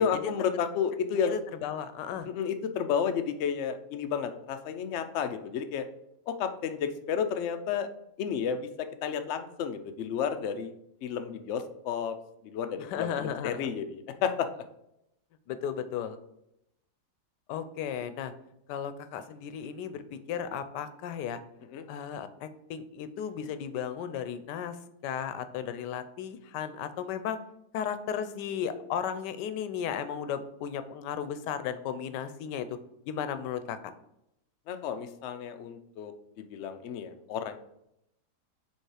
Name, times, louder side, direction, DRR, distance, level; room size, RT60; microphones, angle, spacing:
voice 1, 0.0-1.4 2.2-5.9 6.3-7.9 8.2-10.7 11.0-12.2 12.4-14.6 21.7-21.8 34.7-37.6, left 7 dB, 70° left, 7 dB, 0.7 m, -32 dB
voice 2, 1.1-2.3 12.8-13.7 15.5-16.2 17.5-18.3 18.7-21.4 21.9-24.8 25.0-27.4 27.7-32.8 33.1-33.8, left 8 dB, 90° left, 11 dB, 1.2 m, -35 dB
5.4 x 3.6 x 4.8 m, 0.81 s
omnidirectional pair, 1.8 m